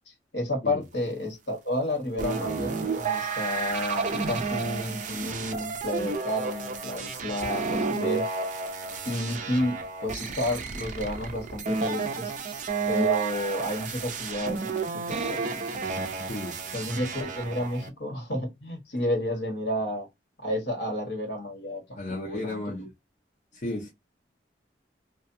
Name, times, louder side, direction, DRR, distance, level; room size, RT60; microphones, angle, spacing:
voice 1, 0.1-8.3 9.0-12.3 12.9-15.9 16.7-20.1 20.4-22.9, left 1 dB, 65° left, 1.2 m, -31 dB
sound 1, 2.2-17.9, right 4 dB, 45° right, 0.4 m, -31 dB
voice 2, 22.0-22.8 23.5-23.9, left 2 dB, 40° left, 0.6 m, -33 dB
2.5 x 2.2 x 2.6 m
head